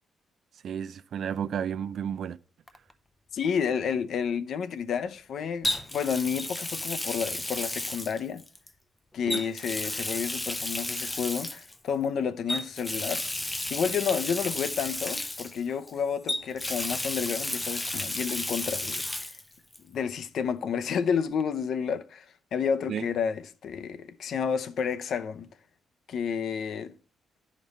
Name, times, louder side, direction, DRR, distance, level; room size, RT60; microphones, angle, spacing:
voice 1, 0.6-2.4 9.3-9.4 22.9-23.1, right 8 dB, 50° right, 0.4 m, -32 dB
Water tap faucet, 2.7-2.9 5.6-8.7 9.3-11.8 12.5-15.9 16.3-19.4 19.7-19.8 21.4-21.5, left 1 dB, 10° left, 0.5 m, -33 dB
voice 2, 3.3-8.4 9.1-13.2 13.7-19.0 19.9-25.5 26.1-26.9, left 7 dB, 55° left, 0.6 m, -30 dB
11.0 x 5.2 x 4.1 m
cardioid pair, 160°, 0 cm